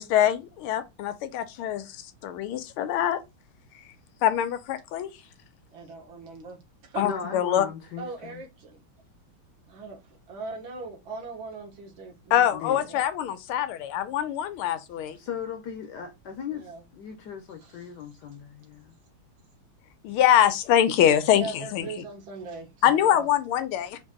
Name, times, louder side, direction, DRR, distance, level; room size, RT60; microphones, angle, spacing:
voice 1, 0.0-1.8 2.2-3.2 4.2-5.1 7.0-7.7 12.3-15.2 20.0-21.9 22.8-24.0, left 10 dB, 90° left, 1.5 m, -24 dB
voice 2, 5.7-7.0 8.0-8.8 9.7-13.0 16.5-16.8 17.6-17.8 21.3-23.3, right 4 dB, 65° right, 2.1 m, -40 dB
voice 3, 7.0-8.4 12.5-13.0 15.2-18.9, left 7 dB, 65° left, 1.2 m, -38 dB
4.4 x 2.7 x 3.6 m
omnidirectional pair, 2.3 m